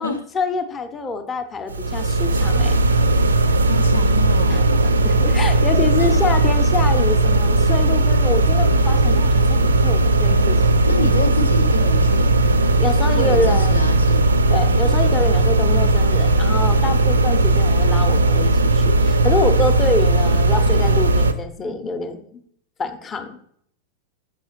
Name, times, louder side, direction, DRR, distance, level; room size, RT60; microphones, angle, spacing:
voice 1, 0.0-2.8 4.5-4.6 5.0-10.6 12.8-13.8 14.5-22.4 22.8-23.4, left 3 dB, 20° left, 7 dB, 0.6 m, -26 dB
sound 1, 1.7-21.3, right 2 dB, 75° right, 0.4 m, -17 dB
voice 2, 3.6-4.7 6.0-6.2 10.8-12.5 13.1-14.3, left 2 dB, 85° left, 5 dB, 0.6 m, -27 dB
6.2 x 6.0 x 2.8 m, 0.67 s
figure-of-eight pair, 90°, 0 cm